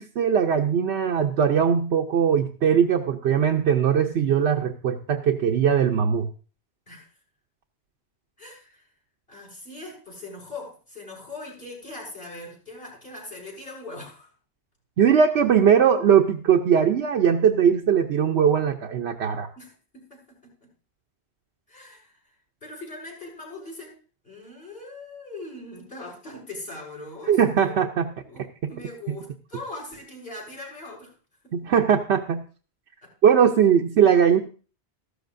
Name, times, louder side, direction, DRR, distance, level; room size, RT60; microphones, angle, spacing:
voice 1, 0.0-6.3 15.0-19.5 27.3-28.1 29.1-29.2 31.5-32.4 33.2-34.4, right 7 dB, 85° right, 2 dB, 1.0 m, -20 dB
voice 2, 8.4-8.9 9.3-14.3 19.6-20.7 21.7-22.3 22.6-23.9 24.2-27.4 27.7-27.8 28.2-31.1 31.4-31.5 33.0-33.1, left 2 dB, 70° left, -2 dB, 6.0 m, -41 dB
14.0 x 13.0 x 2.6 m, 0.37 s
omnidirectional pair, 1.1 m